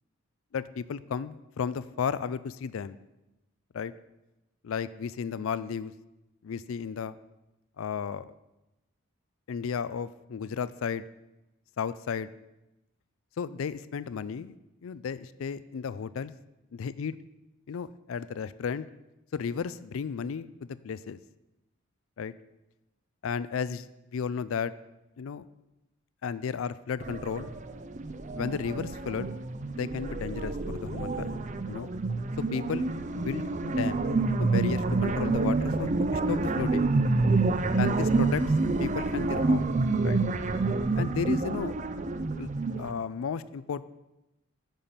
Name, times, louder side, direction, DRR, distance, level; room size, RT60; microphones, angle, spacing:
voice 1, 0.5-3.0 3.7-3.9 4.6-5.9 6.4-7.2 7.8-8.3 9.5-11.0 11.8-12.3 13.4-14.5 14.8-16.3 16.7-17.1 17.7-18.9 19.3-21.2 22.2-22.3 23.2-24.7 25.2-25.5 26.2-27.5 28.4-29.4 29.7-31.4 31.7-31.9 32.5-32.9 33.1-34.0 34.3-36.9 37.8-38.4 38.8-39.7 40.0-40.2 41.0-41.7 42.4-42.5 42.8-43.8, left 6 dB, 75° left, 16 dB, 0.4 m, -33 dB
sound 1, 27.0-42.9, right 3 dB, 35° right, 0.5 m, -28 dB
9.1 x 7.0 x 5.7 m, 0.97 s
head